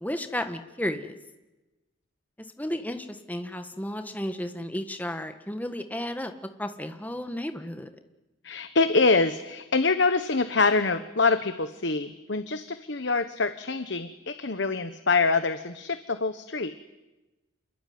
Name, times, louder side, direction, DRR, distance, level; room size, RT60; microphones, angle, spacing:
voice 1, 0.0-1.2 2.6-6.3 6.6-7.9, left 1 dB, 10° left, 7 dB, 1.6 m, -33 dB
voice 2, 8.4-16.7, left 3 dB, 60° left, 10 dB, 1.2 m, -25 dB
28.0 x 22.0 x 9.6 m, 1.1 s
head